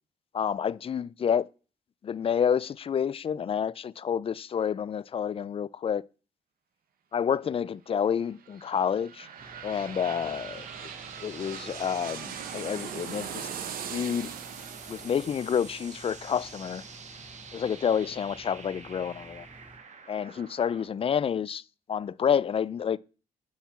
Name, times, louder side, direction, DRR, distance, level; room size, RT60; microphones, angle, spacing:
voice 1, 0.3-1.5 2.0-6.0 7.1-9.3 9.6-10.6 11.2-13.5 13.9-14.3 14.9-16.8 17.5-19.5 20.1-21.6 21.9-23.0, left 8 dB, 40° left, 0.4 m, -29 dB
sound 1, 8.2-17.8 18.2-18.3, right 8 dB, 75° right, 1.2 m, -41 dB
sound 2, 9.2-20.9, right 5 dB, 50° right, 1.4 m, -47 dB
sound 3, 9.4-19.8, equal, 10° right, 2.0 m, -53 dB
7.1 x 5.6 x 7.2 m
cardioid pair, 75°, 15 cm